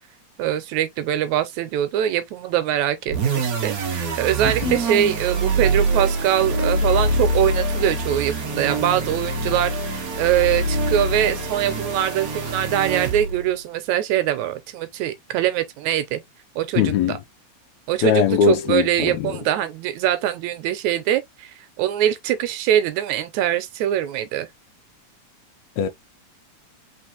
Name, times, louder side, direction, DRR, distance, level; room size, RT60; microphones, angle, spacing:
voice 1, 0.4-16.2 16.6-17.2 17.9-24.5, right 11 dB, 80° right, 2.1 m, -23 dB
sound 1, 3.1-13.5, right 2 dB, 55° right, 1.0 m, -24 dB
voice 2, 4.4-4.8 16.8-17.2 18.0-19.4 25.8-25.9, left 8 dB, 80° left, 1.8 m, -20 dB
4.2 x 4.0 x 2.9 m
omnidirectional pair, 3.4 m